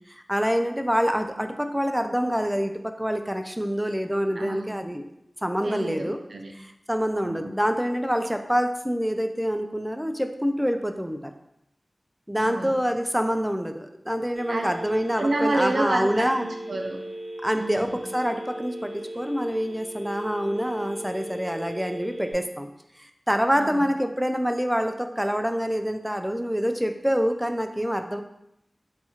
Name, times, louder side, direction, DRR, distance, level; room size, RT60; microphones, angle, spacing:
voice 1, 0.1-5.0 5.4-6.2 6.5-11.3 12.3-16.5 17.4-22.7 23.0-28.2, equal, 5° right, 7 dB, 0.3 m, -26 dB
voice 2, 4.4-4.7 5.6-6.5 7.2-7.5 12.4-12.8 14.5-14.7 15.2-17.0 17.5-18.0 23.5-23.9, right 2 dB, 90° right, 3 dB, 0.4 m, -29 dB
Telephone, 14.3-22.3, right 1 dB, 70° right, 0.8 m, -37 dB
2.8 x 2.4 x 4.2 m, 0.81 s
wide cardioid pair, 55°, 0 cm